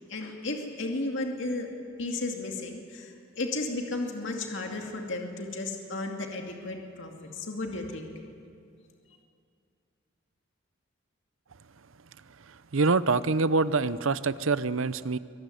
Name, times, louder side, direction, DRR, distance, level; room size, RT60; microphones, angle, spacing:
voice 1, 0.1-1.7 2.0-8.1, left 2 dB, 60° left, 2 dB, 2.5 m, -34 dB
voice 2, 12.7-15.2, right 4 dB, 70° right, 15 dB, 0.7 m, -25 dB
24.0 x 19.5 x 9.4 m, 2.4 s
head